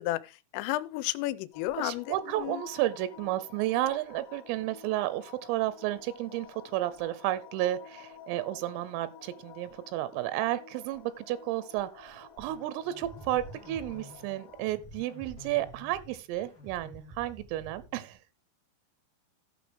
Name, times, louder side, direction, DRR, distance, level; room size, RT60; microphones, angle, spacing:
voice 1, 0.0-2.6, left 16 dB, 85° left, 3.2 m, -33 dB
sound 1, 1.5-14.7, left 7 dB, 30° left, 1.7 m, -51 dB
voice 2, 1.8-18.2, right 14 dB, 90° right, 3.3 m, -32 dB
sound 2, 12.4-18.2, equal, 55° left, 1.4 m, -49 dB
15.5 x 6.3 x 3.4 m
omnidirectional pair, 5.7 m